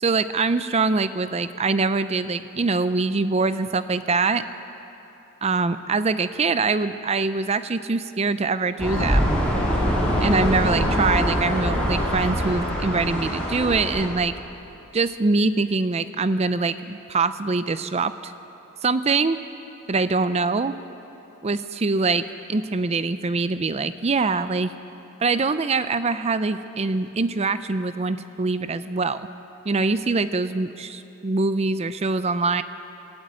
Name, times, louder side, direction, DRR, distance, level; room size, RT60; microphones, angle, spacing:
voice 1, 0.0-4.5 5.4-9.3 10.2-14.3 14.9-18.3 18.8-19.4 19.9-20.8 21.4-24.7 25.2-29.3 29.7-32.6, right 3 dB, 30° right, 12 dB, 0.5 m, -23 dB
sound 1, 8.8-14.1, equal, 5° left, 6.0 m, -23 dB
18.0 x 17.0 x 8.8 m, 2.9 s
head